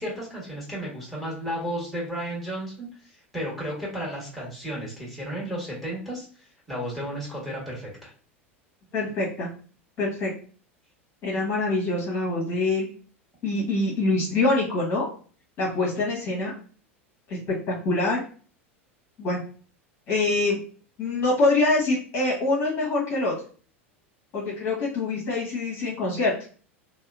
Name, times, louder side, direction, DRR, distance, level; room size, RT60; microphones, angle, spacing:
voice 1, 0.0-8.1, equal, ahead, -5 dB, 1.3 m, -33 dB
voice 2, 8.9-9.5 10.0-10.3 11.2-12.9 13.4-15.1 15.6-16.5 17.3-17.4 17.7-18.2 19.2-19.4 20.1-20.6 21.0-23.3 24.3-26.3, left 2 dB, 35° left, -4 dB, 0.9 m, -24 dB
2.7 x 2.1 x 2.4 m, 0.40 s
figure-of-eight pair, 80°, 7 cm